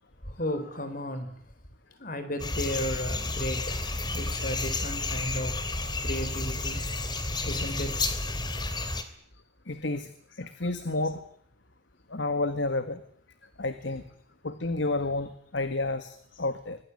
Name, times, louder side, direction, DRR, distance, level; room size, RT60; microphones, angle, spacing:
voice 1, 0.2-1.4 2.0-6.9 7.4-8.1 11.0-11.1, left 1 dB, 50° left, 10 dB, 4.5 m, -35 dB
sound 1, 2.4-9.0, left 2 dB, 25° left, 2.9 m, -31 dB
voice 2, 9.7-10.1 10.4-11.2 12.1-13.0 13.6-14.0 14.4-16.8, left 2 dB, 80° left, 11 dB, 1.8 m, -30 dB
25.5 x 19.5 x 9.8 m, 0.62 s
head